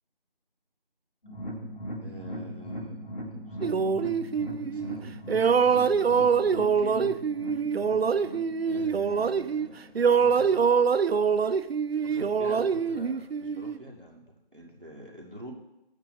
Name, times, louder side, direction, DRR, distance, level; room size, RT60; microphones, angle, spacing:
sound 1, 1.2-10.5 10.8-10.9 11.3-11.4, equal, 70° left, 2.4 m, -40 dB
voice 1, 2.0-4.0 4.5-5.2 6.4-7.1 8.6-9.9 10.2-10.6 12.0-15.5, right 1 dB, 60° right, -1 dB, 2.1 m, -45 dB
sound 2, 3.6-5.0 5.3-9.7 10.0-13.8, right 6 dB, 85° right, 0.5 m, -24 dB
13.0 x 8.7 x 2.7 m, 0.94 s
figure-of-eight pair, 180°, 30 cm